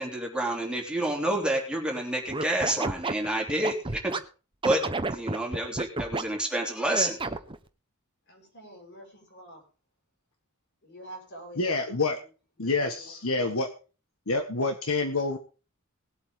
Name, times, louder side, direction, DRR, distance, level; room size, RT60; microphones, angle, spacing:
voice 1, 0.0-4.1 4.6-4.8 5.1-7.2, right 1 dB, 5° right, 0 dB, 3.2 m, -28 dB
Scratching (performance technique), 2.3-4.2 4.6-6.2 6.9-7.6, right 3 dB, 25° right, 1.0 m, -30 dB
voice 2, 8.3-9.6 10.8-11.9 12.6-13.1, right 1 dB, 55° left, 3 dB, 5.8 m, -47 dB
voice 3, 11.6-12.2 12.6-13.7 14.3-15.4, left 3 dB, 75° left, 6 dB, 1.5 m, -27 dB
19.5 x 8.3 x 3.8 m, 0.34 s
head